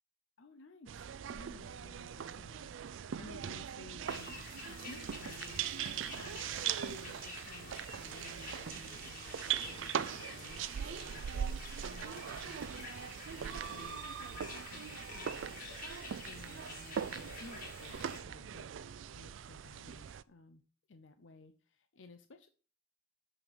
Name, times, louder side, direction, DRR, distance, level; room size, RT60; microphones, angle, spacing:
voice 1, 0.4-1.0 1.3-15.6 16.2-18.7 19.1-20.6 20.9-22.5, left 3 dB, 75° left, 8 dB, 0.7 m, -56 dB
sound 1, 0.9-20.2, right 8 dB, 80° right, 0.4 m, -41 dB
sound 2, 4.1-18.2, left 3 dB, 50° left, 2.4 m, -49 dB
7.1 x 6.2 x 5.0 m, 0.38 s
head